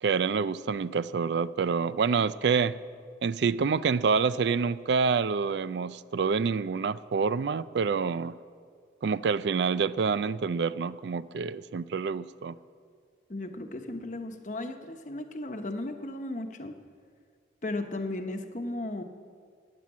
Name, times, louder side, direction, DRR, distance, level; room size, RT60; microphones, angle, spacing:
voice 1, 0.0-2.8 3.2-8.3 9.0-12.6, right 5 dB, 75° right, 17 dB, 0.4 m, -27 dB
voice 2, 13.3-16.7 17.6-19.0, left 2 dB, 45° left, 6 dB, 1.0 m, -35 dB
13.5 x 9.4 x 8.4 m, 2.1 s
head